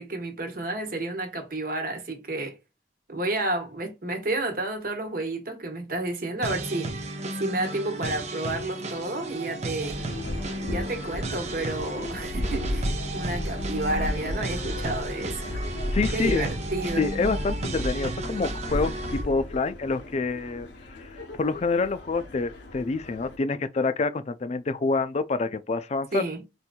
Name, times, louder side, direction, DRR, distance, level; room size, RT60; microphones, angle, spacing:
voice 1, 0.0-2.6 3.1-10.0 10.6-15.5 16.1-17.0 26.1-26.4, right 2 dB, 55° right, 1.1 m, -31 dB
sound 1, 6.4-19.2, right 2 dB, 40° right, 0.6 m, -34 dB
sound 2, 9.8-23.4, left 1 dB, 80° left, 0.7 m, -34 dB
voice 2, 15.9-16.4 17.0-20.7 20.9-21.1 21.4-26.2, left 4 dB, 40° left, 0.4 m, -27 dB
4.3 x 2.6 x 2.2 m
head